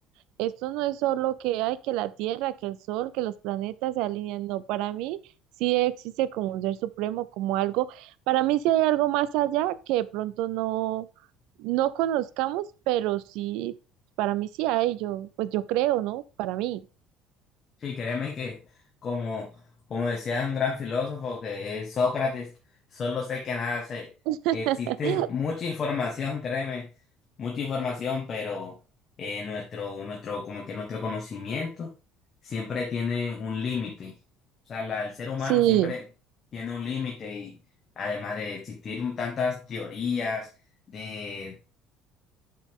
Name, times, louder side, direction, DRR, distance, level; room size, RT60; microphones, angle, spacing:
voice 1, 0.4-5.2 5.6-11.1 11.6-13.7 14.2-16.8 24.3-25.3 35.5-35.9, right 14 dB, 75° right, 0.5 m, -27 dB
voice 2, 17.8-18.6 19.0-19.6 19.9-22.5 22.9-24.1 24.5-26.9 27.4-28.8 29.2-31.9 32.4-34.1 34.6-36.0 36.5-37.5 38.0-40.5 40.9-41.6, left 5 dB, 30° left, 1.4 m, -31 dB
8.9 x 5.3 x 3.6 m
cardioid pair, 170°, 0 cm